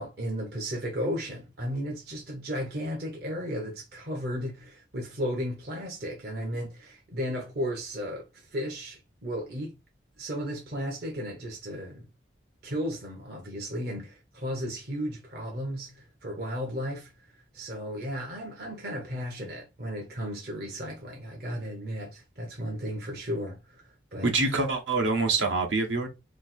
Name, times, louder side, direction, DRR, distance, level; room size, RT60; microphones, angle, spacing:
voice 1, 0.0-9.8 10.2-12.1 12.6-17.1 17.5-23.6 24.1-24.6, equal, 55° right, 0.9 m, -34 dB
voice 2, 24.2-26.1, right 3 dB, 80° right, 1.3 m, -25 dB
4.4 x 2.0 x 4.3 m
head